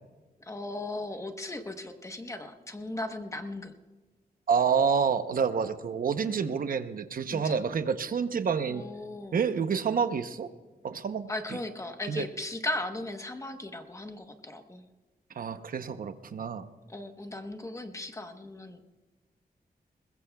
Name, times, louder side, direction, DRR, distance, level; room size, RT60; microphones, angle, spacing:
voice 1, 0.4-3.7 7.3-7.6 8.7-9.4 11.3-14.8 16.9-18.8, left 2 dB, 20° left, 6 dB, 1.0 m, -37 dB
voice 2, 4.5-8.8 9.3-10.5 10.8-11.3 12.1-12.2 15.4-16.7, right 6 dB, 60° right, 9 dB, 0.8 m, -28 dB
21.5 x 21.0 x 2.3 m, 1.3 s
wide cardioid pair, 170°, 16 cm